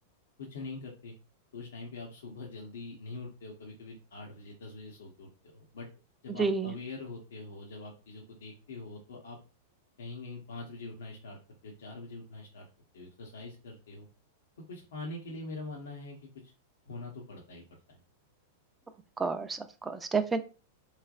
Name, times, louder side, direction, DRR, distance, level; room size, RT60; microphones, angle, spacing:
voice 1, 0.4-1.1 1.5-5.9 6.2-9.4 10.0-11.4 11.6-12.7 12.9-14.1 14.7-16.5 16.9-17.6 17.9-18.0, left 3 dB, 85° left, -1 dB, 0.9 m, -43 dB
voice 2, 6.3-6.7 19.2-20.4, right 4 dB, 10° right, 7 dB, 0.4 m, -30 dB
3.7 x 3.2 x 2.4 m, 0.33 s
hypercardioid pair, 125°, 0 cm